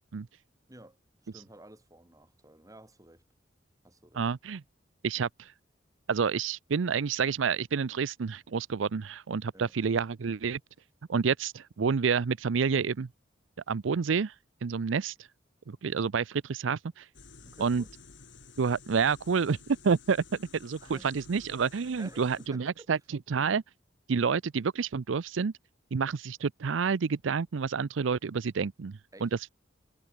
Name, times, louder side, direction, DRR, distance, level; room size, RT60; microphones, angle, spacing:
voice 1, 1.3-3.2 3.8-4.3 9.5-9.7 17.4-17.9 20.8-21.1 21.7-22.9 29.1-29.3, right 1 dB, 20° right, 3.8 m, -52 dB
voice 2, 4.2-4.6 5.0-5.5 6.1-10.6 11.1-13.1 13.7-14.3 14.6-15.1 15.7-17.1 17.6-17.8 18.6-19.6 19.8-23.0 23.3-23.6 24.1-25.5 25.9-29.5, right 5 dB, 85° right, 0.5 m, -29 dB
sound 1, 17.1-22.5, left 4 dB, 70° left, 5.8 m, -53 dB
head